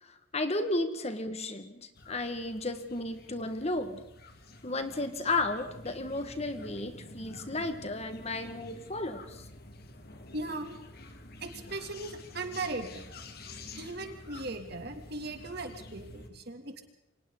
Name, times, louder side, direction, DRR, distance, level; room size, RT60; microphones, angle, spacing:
voice 1, 0.0-4.0 4.6-9.5, left 2 dB, 35° left, 8 dB, 1.9 m, -33 dB
sound 1, 1.9-16.3, left 2 dB, 55° left, 2.4 m, -49 dB
voice 2, 10.3-10.8 11.4-13.1 13.8-16.8, right 2 dB, 55° right, 5 dB, 3.0 m, -38 dB
29.0 x 25.0 x 4.1 m, 0.80 s
head